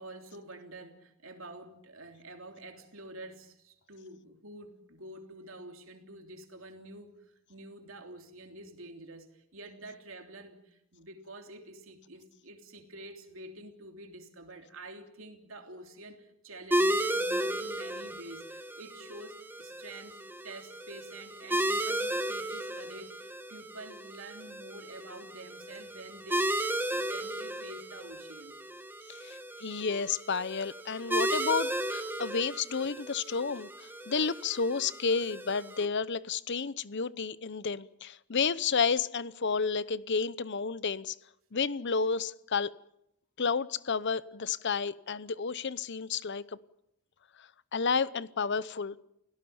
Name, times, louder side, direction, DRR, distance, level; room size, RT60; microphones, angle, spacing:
voice 1, 0.0-20.2 20.4-26.6 26.9-28.6, right 2 dB, 65° right, 4 dB, 3.3 m, -48 dB
sound 1, 16.7-35.9, right 1 dB, 10° right, 1.4 m, -34 dB
voice 2, 29.1-41.2 41.5-42.7 43.4-46.6 47.4-49.0, left 5 dB, 55° left, 17 dB, 0.8 m, -31 dB
29.0 x 17.5 x 7.1 m, 0.81 s
head